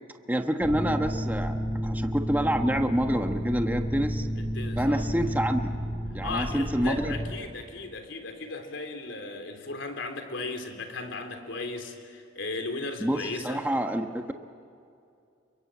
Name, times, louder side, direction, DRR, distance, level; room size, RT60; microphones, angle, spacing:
voice 1, 0.3-1.5 1.8-4.3 4.8-5.7 6.1-7.1 13.0-14.3, equal, 10° right, 5 dB, 1.2 m, -27 dB
sound 1, 0.6-7.3, equal, 50° left, 4.6 m, -31 dB
voice 2, 4.5-5.1 6.2-13.6, left 3 dB, 80° left, 6 dB, 3.5 m, -36 dB
29.0 x 23.5 x 8.6 m, 2.5 s
head